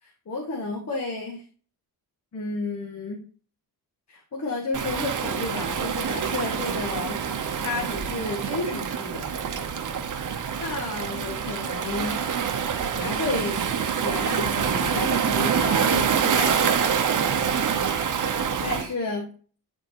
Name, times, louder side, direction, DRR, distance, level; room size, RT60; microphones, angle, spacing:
voice 1, 0.0-1.4 2.3-3.2 4.1-7.2 7.6-9.3 10.6-12.2 12.9-13.6 14.0-16.9 18.6-19.3, left 3 dB, 40° left, -1 dB, 2.0 m, -32 dB
Waves surf, 4.7-18.9, right 7 dB, 50° right, 0.9 m, -26 dB
11.5 x 4.6 x 3.0 m, 0.40 s
wide cardioid pair, 145°, 40 cm